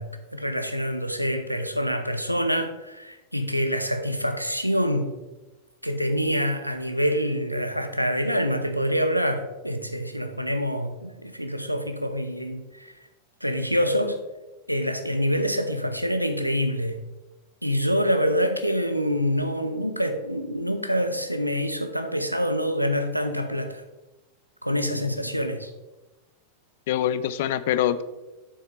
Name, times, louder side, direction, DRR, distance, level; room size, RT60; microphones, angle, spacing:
voice 1, 0.0-5.1 5.8-12.9 13.4-14.2 14.7-17.0 17.6-23.8 24.6-25.7, equal, 90° right, 8 dB, 0.7 m, -26 dB
voice 2, 26.9-28.0, left 11 dB, 55° left, 15 dB, 0.4 m, -25 dB
8.7 x 7.3 x 3.0 m, 1.1 s
figure-of-eight pair, 90°, 0 cm